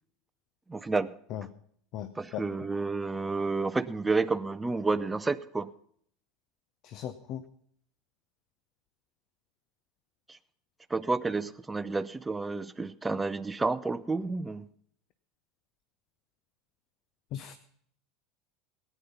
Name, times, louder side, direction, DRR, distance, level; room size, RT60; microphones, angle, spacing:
voice 1, 0.7-1.1 2.2-5.7 10.3-10.4 10.9-14.7, right 3 dB, 10° right, 13 dB, 0.6 m, -30 dB
voice 2, 1.9-2.4 6.8-7.4 17.3-17.5, left 10 dB, 45° left, 11 dB, 0.8 m, -37 dB
18.0 x 9.3 x 5.5 m, 0.63 s
figure-of-eight pair, 75°, 0 cm